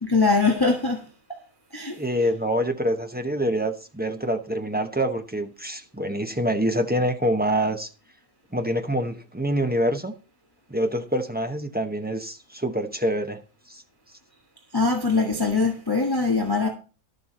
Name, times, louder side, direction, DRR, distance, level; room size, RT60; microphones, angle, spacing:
voice 1, 0.0-1.4 1.7-2.0 14.7-16.7, left 3 dB, 15° left, 1.5 m, -22 dB
voice 2, 2.0-7.9 8.5-10.1 10.7-13.4 13.7-13.8, equal, 10° right, 0.7 m, -26 dB
12.0 x 6.9 x 4.2 m
omnidirectional pair, 1.5 m